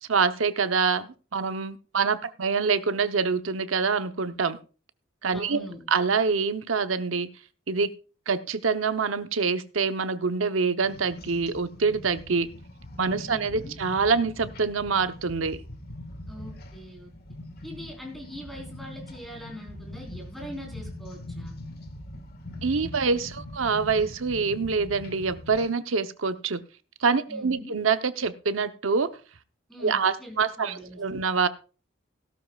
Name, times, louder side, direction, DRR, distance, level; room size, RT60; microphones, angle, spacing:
voice 1, 0.1-4.6 5.2-5.6 5.9-7.3 7.7-7.9 8.3-12.5 13.0-15.6 22.6-26.6 27.0-29.2 29.8-31.5, right 5 dB, 90° right, 10 dB, 0.8 m, -25 dB
voice 2, 5.3-5.8 13.2-13.8 16.3-17.1 17.6-21.6 27.3-27.8 29.7-31.0, equal, ahead, 1 dB, 4.0 m, -42 dB
sound 1, 10.8-25.7, left 1 dB, 50° left, 1.7 m, -42 dB
17.0 x 12.5 x 2.4 m, 0.34 s
head